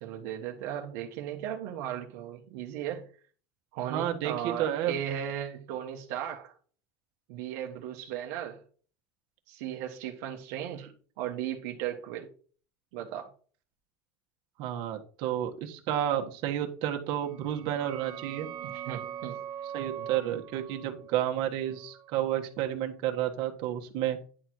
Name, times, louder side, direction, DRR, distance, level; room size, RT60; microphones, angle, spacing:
voice 1, 0.0-3.1 3.7-6.5 7.3-8.6 9.5-10.9 11.2-12.3 12.9-13.3 18.6-19.4 19.9-20.4, right 10 dB, 80° right, 1.3 m, -36 dB
voice 2, 3.9-4.9 14.6-18.5 19.7-24.2, right 11 dB, 60° right, 1.5 m, -31 dB
sound 1, 17.2-22.6, right 10 dB, 45° right, 1.1 m, -42 dB
10.0 x 4.4 x 4.6 m
cardioid pair, 155°, 9 cm